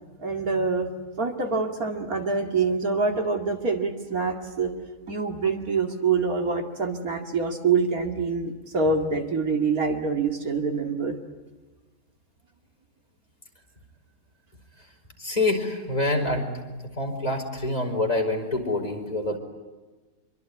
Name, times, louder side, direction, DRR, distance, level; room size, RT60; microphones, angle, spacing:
voice 1, 0.2-0.9 1.2-4.7 5.1-11.2, right 4 dB, 65° right, 4 dB, 2.8 m, -25 dB
voice 2, 15.2-19.4, left 2 dB, 25° left, 2 dB, 4.7 m, -26 dB
26.0 x 24.0 x 9.6 m, 1.2 s
omnidirectional pair, 1.6 m